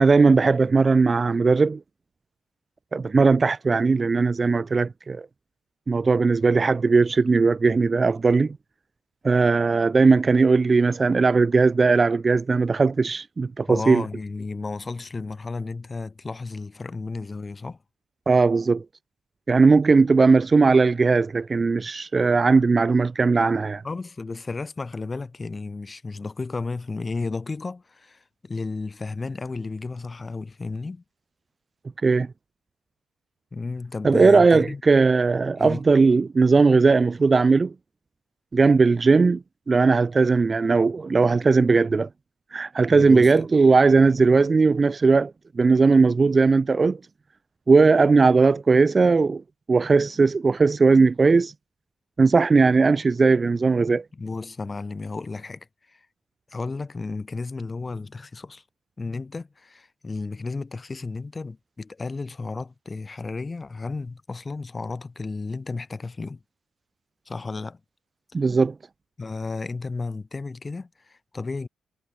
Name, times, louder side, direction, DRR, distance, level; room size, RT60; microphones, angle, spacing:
voice 1, 0.0-1.8 2.9-5.3 5.9-8.6 9.2-14.0 18.3-18.8 19.5-23.8 32.0-32.3 34.0-37.7 38.5-42.1 42.5-47.0 47.7-49.4 49.7-51.5 52.2-54.0 68.3-68.7, right 4 dB, 25° right, 0.4 m, -18 dB
voice 2, 13.7-17.8 23.8-31.0 33.5-34.8 35.6-35.9 42.9-43.3 54.1-56.1 56.5-58.6 59.0-66.4 67.3-67.8 69.2-71.7, left 3 dB, 20° left, 1.0 m, -33 dB
wide cardioid pair, 165°, 0 cm